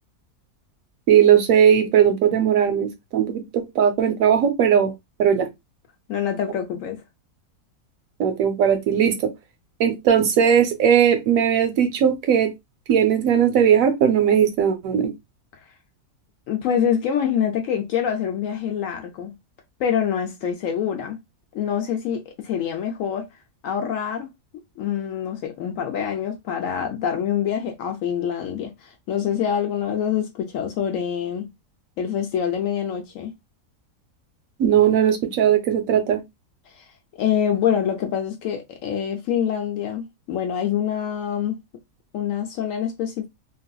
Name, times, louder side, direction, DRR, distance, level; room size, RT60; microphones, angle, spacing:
voice 1, 1.1-4.9 5.2-5.5 8.2-9.3 9.8-12.5 12.9-15.1 34.6-36.2, right 8 dB, 70° right, 0.9 m, -18 dB
voice 2, 6.1-7.0 16.5-19.3 19.8-21.2 21.5-23.3 23.6-24.3 24.8-31.5 32.0-33.3 36.7-36.9 37.1-41.6 42.1-43.3, left 8 dB, 70° left, 0.9 m, -25 dB
3.3 x 2.5 x 2.2 m
omnidirectional pair, 1.7 m